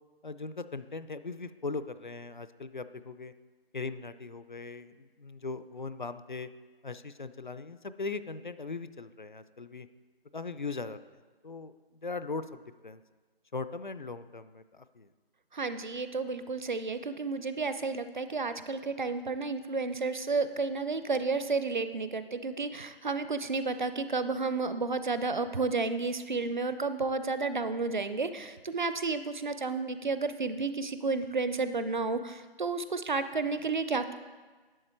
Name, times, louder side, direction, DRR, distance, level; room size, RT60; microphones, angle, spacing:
voice 1, 0.2-3.3 3.7-6.5 6.8-9.9 10.3-11.0 11.4-11.7 12.0-13.0 13.5-15.1, left 4 dB, 50° left, 12 dB, 0.4 m, -39 dB
voice 2, 15.5-34.1, right 4 dB, 50° right, 11 dB, 0.6 m, -31 dB
11.0 x 7.2 x 4.4 m, 1.4 s
figure-of-eight pair, 175°, 31 cm